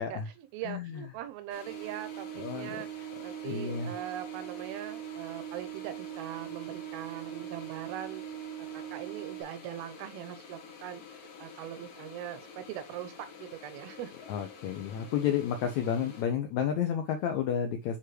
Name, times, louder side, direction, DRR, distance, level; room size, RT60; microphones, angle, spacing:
voice 1, 0.0-8.3 8.6-13.1 13.4-14.1, right 11 dB, 90° right, 2.7 m, -41 dB
voice 2, 0.6-1.0 2.4-2.7 3.4-3.9 14.3-18.0, left 8 dB, 85° left, 1.6 m, -31 dB
sound 1, 1.5-16.2, left 5 dB, 60° left, 3.5 m, -50 dB
sound 2, 1.6-9.4, right 13 dB, 65° right, 1.0 m, -41 dB
9.6 x 3.7 x 3.2 m
omnidirectional pair, 4.3 m